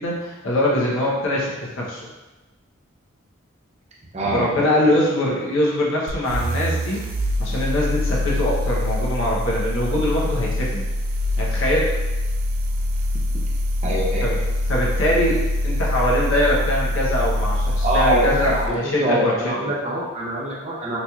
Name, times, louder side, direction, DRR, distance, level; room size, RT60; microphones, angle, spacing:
voice 1, 0.0-2.0 4.3-7.0 7.4-10.8 11.4-11.9 14.2-14.4 14.7-19.7, left 1 dB, 80° left, -5 dB, 0.8 m, -22 dB
voice 2, 4.1-4.5 13.8-14.2 17.8-21.0, right 1 dB, 30° right, -4 dB, 0.6 m, -24 dB
sound 1, 6.1-18.8, left 1 dB, 90° right, 0.4 m, -24 dB
4.1 x 3.0 x 2.3 m, 1.1 s
head